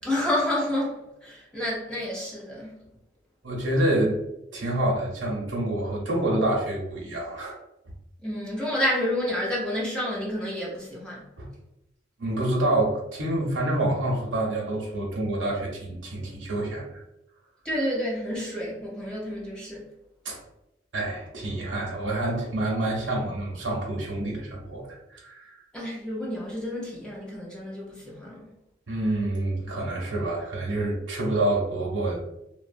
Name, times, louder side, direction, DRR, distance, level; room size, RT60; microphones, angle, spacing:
voice 1, 0.0-2.8 8.2-11.2 17.6-19.9 25.7-28.5, left 1 dB, 5° left, 0.5 m, -29 dB
voice 2, 3.4-4.2 4.5-7.6 11.4-11.5 12.2-17.0 20.2-20.4 20.9-25.6 28.9-32.4, right 1 dB, 80° right, 0.7 m, -27 dB
2.9 x 2.1 x 2.5 m
head